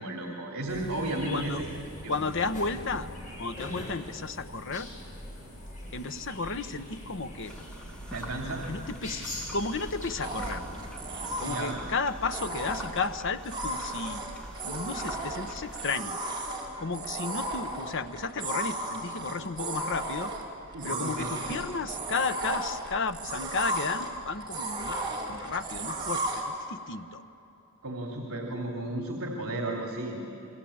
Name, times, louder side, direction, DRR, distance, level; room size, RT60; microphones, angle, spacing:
voice 1, 0.0-1.5 2.0-2.2 8.1-8.6 11.4-11.8 20.7-21.6 27.8-30.2, right 1 dB, 70° right, 1 dB, 3.2 m, -34 dB
sound 1, 0.7-11.5, left 1 dB, 35° left, 7.9 m, -42 dB
voice 2, 2.1-3.1 3.4-4.9 5.9-7.5 8.5-9.2 9.5-10.6 11.4-14.3 14.6-16.2 16.8-20.3 20.8-25.0 25.3-27.2, left 4 dB, 55° left, 10 dB, 1.1 m, -33 dB
sound 2, 7.4-15.9, equal, 5° left, 2.1 m, -44 dB
sound 3, 10.2-26.4, right 2 dB, 20° right, 4.5 m, -35 dB
29.5 x 22.5 x 8.8 m, 2.9 s
head